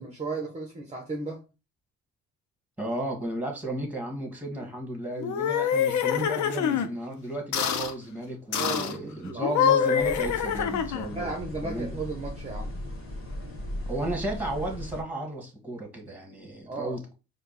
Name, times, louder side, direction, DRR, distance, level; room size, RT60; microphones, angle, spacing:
voice 1, 0.0-1.4 8.5-9.6 11.1-12.7 16.7-17.0, right 3 dB, 20° right, 0.9 m, -35 dB
voice 2, 2.8-11.9 13.9-17.1, right 1 dB, 5° right, 1.8 m, -34 dB
sound 1, 5.2-6.9 7.5-7.9 8.5-9.0 9.4-11.2, left 8 dB, 70° left, 0.6 m, -25 dB
sound 2, 10.0-15.0, equal, 45° left, 1.6 m, -37 dB
4.4 x 2.4 x 4.1 m
cardioid pair, 90°, 30 cm